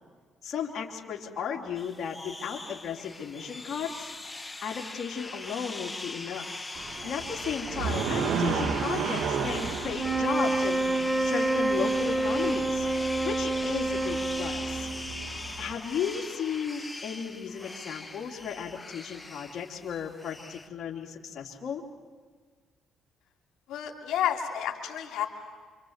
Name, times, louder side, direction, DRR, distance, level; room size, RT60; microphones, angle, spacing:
voice 1, 0.4-4.1 4.6-6.5 7.0-10.8 11.2-12.9 13.2-14.9 15.6-21.8, left 7 dB, 60° left, -1 dB, 2.9 m, -35 dB
sound 1, 1.8-20.7, left 2 dB, 15° left, 1.4 m, -40 dB
sound 2, 6.8-15.7, right 5 dB, 75° right, 1.8 m, -34 dB
sound 3, 9.9-15.4, right 2 dB, 10° right, 1.2 m, -28 dB
voice 2, 23.7-25.3, left 10 dB, 80° left, 0 dB, 3.0 m, -30 dB
28.0 x 25.5 x 8.1 m, 1.5 s
cardioid pair, 85°, 0 cm